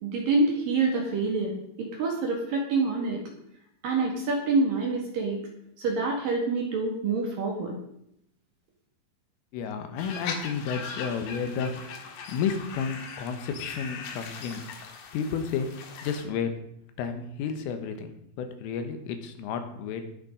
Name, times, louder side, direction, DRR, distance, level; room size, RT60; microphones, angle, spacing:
voice 1, 0.0-3.2 3.8-5.4 5.8-7.7, right 3 dB, 55° right, 0 dB, 3.0 m, -26 dB
voice 2, 9.5-14.6 15.1-16.5 17.0-20.1, left 6 dB, 80° left, 6 dB, 3.8 m, -32 dB
sound 1, 10.0-16.2, left 5 dB, 65° left, 3.5 m, -40 dB
20.0 x 6.8 x 5.2 m, 0.74 s
omnidirectional pair, 5.8 m